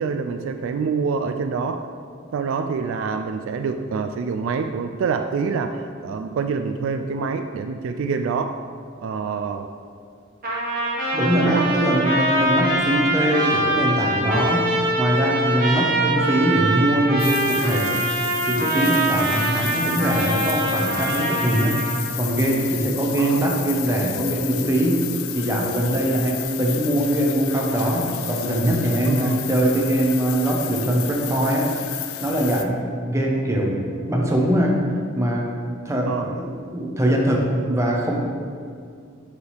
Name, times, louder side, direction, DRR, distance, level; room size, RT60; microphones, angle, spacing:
voice 1, 0.0-1.8 2.3-8.6 9.0-9.7 11.4-11.7 12.6-12.7 23.2-23.5 29.1-29.4 36.1-36.3, right 5 dB, 65° right, 7 dB, 0.3 m, -26 dB
Trumpet, 10.4-22.1, right 1 dB, 45° right, 1.3 m, -23 dB
voice 2, 11.1-14.7 15.0-17.9 18.5-21.8 22.2-25.0 25.3-31.7 32.2-33.8 34.1-34.8 35.1-35.5 35.8-38.2, right 1 dB, 15° right, -2 dB, 0.9 m, -22 dB
sound 1, 17.2-32.6, left 12 dB, 80° left, 0.4 m, -32 dB
7.9 x 4.8 x 3.3 m, 2.2 s
head